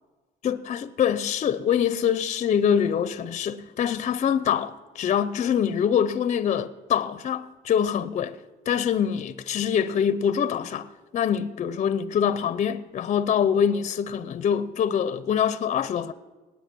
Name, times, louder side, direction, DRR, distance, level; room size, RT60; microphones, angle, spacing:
voice 1, 0.4-8.4 8.7-16.1, left 8 dB, 45° left, 0.6 m, -24 dB
18.5 x 8.7 x 6.1 m
cardioid pair, 110°, 17 cm